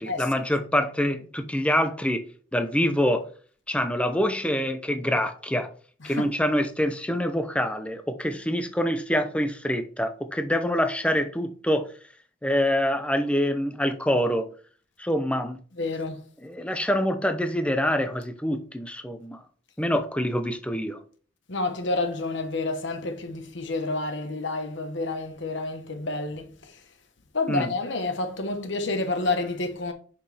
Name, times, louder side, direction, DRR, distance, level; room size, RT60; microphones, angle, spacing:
voice 1, 0.0-2.2 2.5-3.2 3.7-5.7 6.0-11.8 12.4-14.5 15.0-15.6 16.4-19.4 19.8-21.0 27.5-27.7, equal, 5° left, 0.6 m, -25 dB
voice 2, 15.8-16.2 21.5-26.7 27.3-29.9, left 2 dB, 60° left, 1.2 m, -29 dB
6.3 x 5.6 x 3.4 m
head